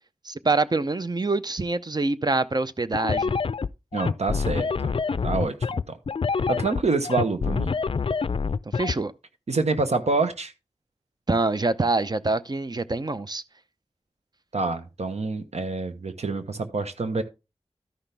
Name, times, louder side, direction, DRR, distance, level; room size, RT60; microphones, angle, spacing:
voice 1, 0.2-3.4 8.7-9.1 11.3-13.4, right 3 dB, 40° right, 0.6 m, -25 dB
sound 1, 2.9-8.9, left 5 dB, 55° left, 0.4 m, -26 dB
voice 2, 3.9-4.9 5.2-6.0 6.5-7.7 9.5-10.5 14.5-17.2, right 3 dB, 85° right, 1.0 m, -27 dB
13.0 x 5.8 x 3.4 m
wide cardioid pair, 55°, 11 cm